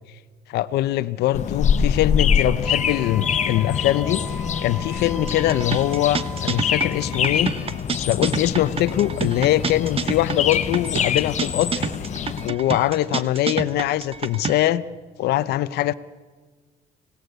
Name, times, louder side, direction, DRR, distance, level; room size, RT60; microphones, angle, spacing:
voice 1, 0.5-7.5 7.9-11.9 12.4-14.8 15.2-15.9, left 14 dB, 75° left, 12 dB, 0.7 m, -22 dB
sound 1, 1.3-12.5, left 7 dB, 45° left, 1.0 m, -25 dB
Wind instrument woodwind instrument, 2.6-7.4, right 1 dB, 10° right, 3.1 m, -38 dB
sound 2, 5.3-14.6, right 5 dB, 35° right, 1.1 m, -29 dB
26.0 x 17.5 x 8.1 m, 1.4 s
cardioid pair, 110°, 17 cm